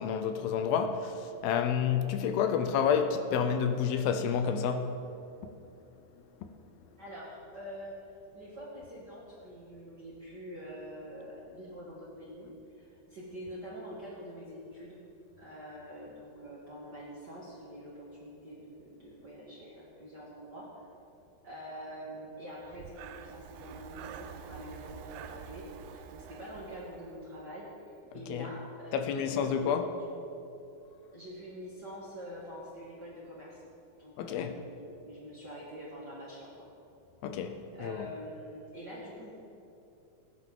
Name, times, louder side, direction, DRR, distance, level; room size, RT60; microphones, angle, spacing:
voice 1, 0.0-4.9 28.3-28.5 28.9-29.9 34.2-34.5 37.2-38.1, left 7 dB, 80° left, 2.5 m, -29 dB
voice 2, 7.0-8.0 8.3-15.0 15.4-20.7 21.4-30.1 31.1-33.6 34.0-36.7 37.7-39.3, equal, 45° right, 1.4 m, -45 dB
Breathing, 22.6-27.5, right 8 dB, 80° right, 2.4 m, -47 dB
19.0 x 9.9 x 3.7 m
omnidirectional pair, 4.4 m